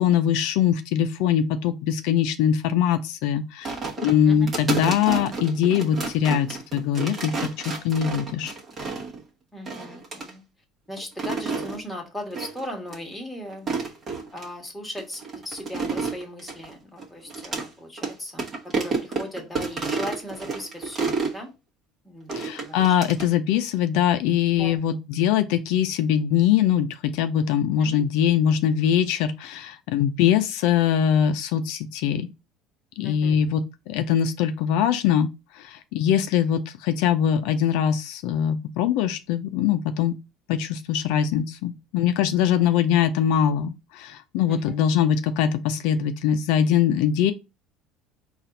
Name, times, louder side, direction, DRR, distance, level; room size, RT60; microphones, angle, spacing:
voice 1, 0.0-8.5 22.3-32.3 33.0-40.2 40.5-47.3, left 9 dB, 75° left, 0.5 m, -22 dB
sound 1, 3.6-9.2 9.6-10.3 11.0-11.8 12.3-12.6 12.9-13.0 13.5-14.5 15.0-17.7 18.0-18.1 18.4-21.4 22.3-23.3, right 4 dB, 30° right, 1.0 m, -30 dB
voice 2, 9.5-10.4 10.9-13.7 14.3-21.5 22.0-22.4 22.6-23.0 24.6-24.8 27.8-28.0 33.0-33.4 44.5-44.7, left 1 dB, 5° left, 1.3 m, -37 dB
4.2 x 2.4 x 3.9 m
cardioid pair, 140°, 0 cm